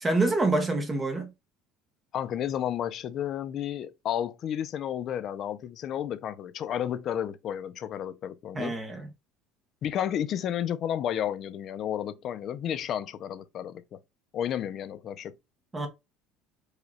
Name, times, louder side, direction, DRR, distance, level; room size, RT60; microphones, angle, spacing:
voice 1, 0.0-1.3 8.5-9.1 15.7-15.9, right 2 dB, 10° right, 0.7 m, -26 dB
voice 2, 2.1-8.8 9.8-14.0 14.3-15.3, left 10 dB, 35° left, 0.4 m, -32 dB
4.9 x 2.2 x 4.0 m
cardioid pair, 175°, 0 cm